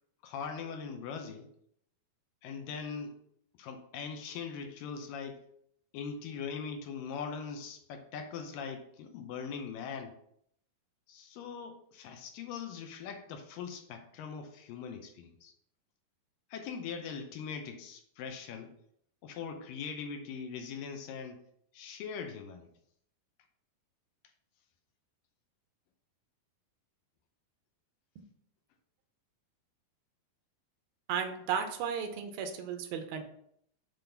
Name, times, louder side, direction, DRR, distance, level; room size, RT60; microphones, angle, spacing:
voice 1, 0.2-1.5 2.4-3.2 3.6-5.4 5.9-10.1 11.1-15.5 16.5-18.7 19.2-21.4 21.7-22.7, left 6 dB, 75° left, 5 dB, 2.3 m, -41 dB
voice 2, 31.1-33.2, right 7 dB, 85° right, 7 dB, 2.7 m, -34 dB
7.7 x 3.5 x 5.7 m, 0.69 s
omnidirectional pair, 4.2 m